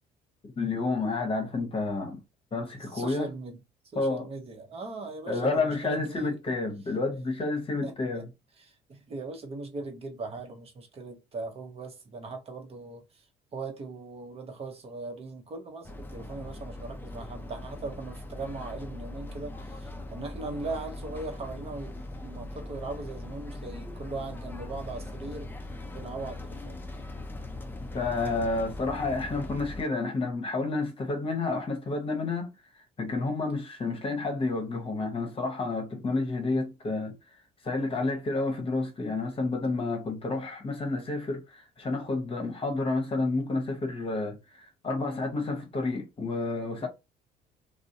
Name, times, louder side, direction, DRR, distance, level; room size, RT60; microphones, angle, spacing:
voice 1, 0.6-2.2 2.5-3.3 4.0-4.3 5.3-8.3 27.9-32.5 33.0-37.1 37.6-46.9, left 3 dB, 35° left, 0.9 m, -30 dB
voice 2, 2.9-3.6 3.9-6.4 7.8-8.2 8.6-13.2 13.5-21.9 22.2-25.5 25.9-26.8 36.5-36.7 46.8-46.9, right 3 dB, 35° right, 0.8 m, -39 dB
sound 1, 15.8-29.8, left 2 dB, 10° left, 0.4 m, -40 dB
2.5 x 2.0 x 2.6 m
cardioid pair, 110°, 17 cm